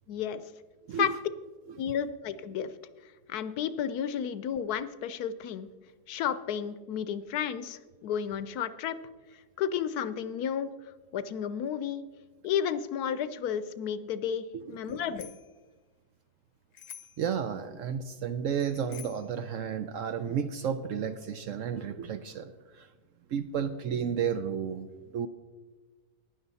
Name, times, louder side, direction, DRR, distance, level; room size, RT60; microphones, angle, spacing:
voice 1, 0.1-0.4 1.0-1.1 1.8-2.7 3.3-5.7 6.1-9.0 9.6-10.7 11.1-12.0 12.4-15.3, left 8 dB, 75° left, 14 dB, 1.1 m, -32 dB
voice 2, 14.5-15.0 17.2-22.9 23.3-24.9 25.1-25.3, right 7 dB, 65° right, 10 dB, 0.8 m, -32 dB
Bicycle bell, 14.8-15.6 16.7-17.3 18.6-19.3, left 9 dB, 55° left, 0.9 m, -48 dB
15.0 x 10.5 x 4.1 m, 1.3 s
omnidirectional pair, 1.7 m